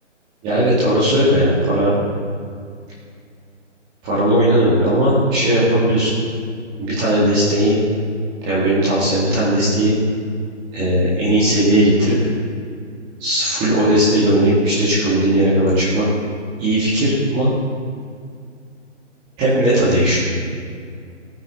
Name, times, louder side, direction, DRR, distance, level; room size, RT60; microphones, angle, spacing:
voice 1, 0.4-1.9 4.0-6.1 6.8-7.8 8.4-9.9 10.7-12.2 13.2-16.0 16.6-17.5 19.4-20.2, right 1 dB, 10° right, -10 dB, 1.9 m, -17 dB
17.5 x 8.8 x 3.1 m, 2.2 s
figure-of-eight pair, 145°, 36 cm